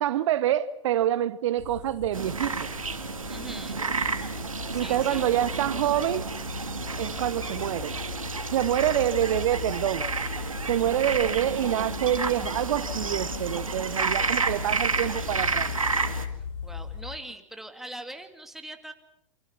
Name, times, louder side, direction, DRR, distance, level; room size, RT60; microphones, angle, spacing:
voice 1, 0.0-2.7 4.7-6.3 7.0-7.9 8.5-10.1 10.7-15.7, right 11 dB, 65° right, 16 dB, 0.9 m, -26 dB
sound 1, 1.6-17.0, left 6 dB, 65° left, 4.3 m, -38 dB
sound 2, 2.1-16.3, right 4 dB, 90° right, 2.1 m, -31 dB
voice 2, 3.3-3.8 4.7-5.3 11.1-11.8 16.6-18.9, right 1 dB, ahead, 6 dB, 2.5 m, -42 dB
28.5 x 24.5 x 5.9 m, 0.75 s
figure-of-eight pair, 95°, 17 cm